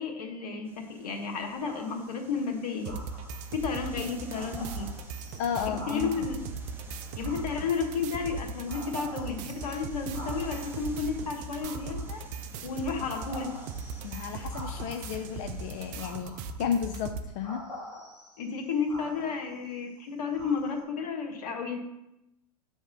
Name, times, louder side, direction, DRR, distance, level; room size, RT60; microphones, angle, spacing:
voice 1, 0.0-2.9 3.5-4.9 5.7-6.4 7.1-12.2 12.6-13.5 18.4-21.8, left 5 dB, 75° left, 4 dB, 1.3 m, -32 dB
sound 1, 0.6-16.2, right 1 dB, 10° right, 0.9 m, -51 dB
sound 2, 1.6-2.2 2.8-3.6 4.0-4.1 4.3-6.5 7.2-8.3 8.7-10.8 11.5-12.5 13.0-15.2 16.0-16.8 17.4-19.8 20.3-20.8, left 1 dB, 20° left, 2.9 m, -46 dB
sound 3, 2.8-17.3, right 4 dB, 40° right, 0.5 m, -39 dB
voice 2, 5.4-6.1 14.0-17.6, left 8 dB, 50° left, 6 dB, 0.5 m, -33 dB
7.3 x 3.5 x 6.3 m, 0.90 s
hypercardioid pair, 115°, 20 cm